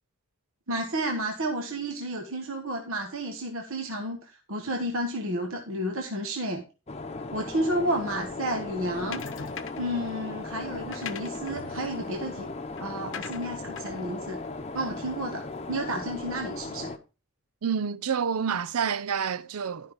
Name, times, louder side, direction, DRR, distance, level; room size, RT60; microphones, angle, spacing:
voice 1, 0.7-6.6 7.3-9.3 9.8-12.5 12.8-14.4 14.7-16.9, right 1 dB, 65° right, 1.5 m, -31 dB
sound 1, 6.9-17.0, left 3 dB, 30° left, 0.8 m, -37 dB
sound 2, 9.1-10.0 10.7-15.4, left 6 dB, 60° left, 0.9 m, -43 dB
voice 2, 17.6-19.9, right 7 dB, 80° right, 0.6 m, -28 dB
12.5 x 5.5 x 5.2 m
head